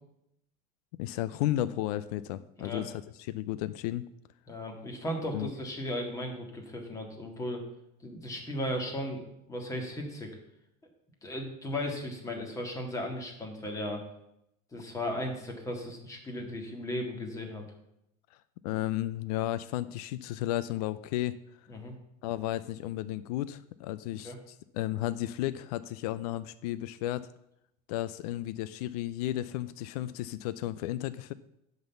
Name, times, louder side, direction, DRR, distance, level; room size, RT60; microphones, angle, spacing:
voice 1, 1.0-2.9 3.3-4.1 5.3-5.5 18.6-21.4 22.2-27.3 27.9-31.3, left 14 dB, 85° left, 14 dB, 0.5 m, -33 dB
voice 2, 4.5-7.6 8.0-10.3 11.2-14.0 14.7-17.6 21.7-21.9 24.2-24.4, left 1 dB, 15° left, 2 dB, 1.8 m, -36 dB
10.5 x 4.0 x 7.0 m, 0.80 s
supercardioid pair, 145°, 19 cm